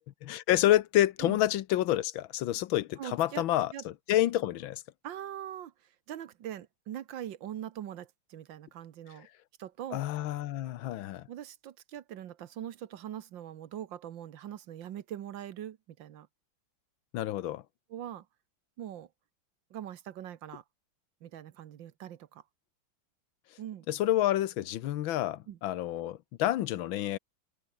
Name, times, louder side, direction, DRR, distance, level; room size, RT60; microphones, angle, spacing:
voice 1, 0.2-4.8 9.9-11.3 17.1-17.6 23.9-27.2, left 13 dB, 85° left, 1.6 m, -28 dB
voice 2, 3.0-3.4 3.7-3.8 5.0-5.7 6.1-9.3 9.6-10.0 11.3-16.3 17.9-18.3 18.8-19.1 19.7-20.6 21.2-22.4 23.6-23.9 25.5-25.6, right 11 dB, 70° right, 1.7 m, -42 dB
omnidirectional pair, 2.2 m